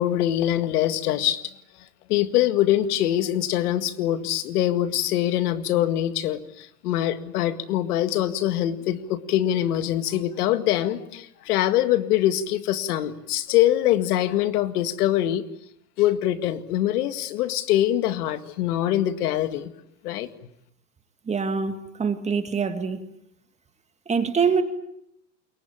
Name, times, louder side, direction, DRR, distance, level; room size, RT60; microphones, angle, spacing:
voice 1, 0.0-1.5 2.1-15.4 16.0-19.7 20.0-20.3, left 12 dB, 70° left, 10 dB, 2.1 m, -23 dB
voice 2, 21.3-23.0 24.1-24.6, right 5 dB, 15° right, 8 dB, 1.9 m, -24 dB
28.0 x 23.0 x 8.6 m, 0.75 s
supercardioid pair, 140°, 48 cm